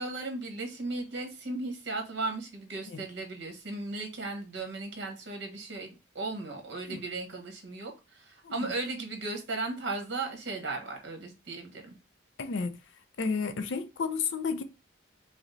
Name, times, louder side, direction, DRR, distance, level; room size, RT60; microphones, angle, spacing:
voice 1, 0.0-11.9, right 3 dB, 55° right, 1.3 m, -36 dB
voice 2, 12.4-12.8 13.2-14.6, left 5 dB, 65° left, 0.5 m, -32 dB
4.9 x 2.1 x 3.9 m
head